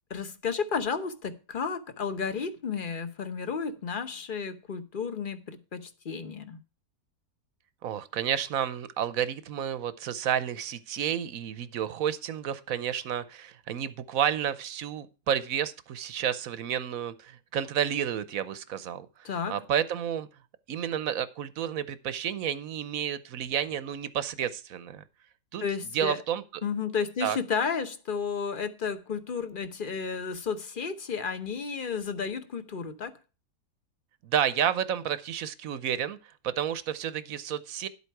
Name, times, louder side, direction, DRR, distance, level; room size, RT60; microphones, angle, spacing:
voice 1, 0.1-6.6 19.2-19.6 25.6-26.2 26.6-33.2, left 6 dB, 40° left, 0.8 m, -32 dB
voice 2, 7.8-20.3 20.7-25.0 25.5-25.6 25.9-26.4 27.2-27.4 34.2-36.2 36.4-37.9, right 9 dB, 60° right, 1.0 m, -31 dB
11.0 x 8.3 x 4.6 m
omnidirectional pair, 1.9 m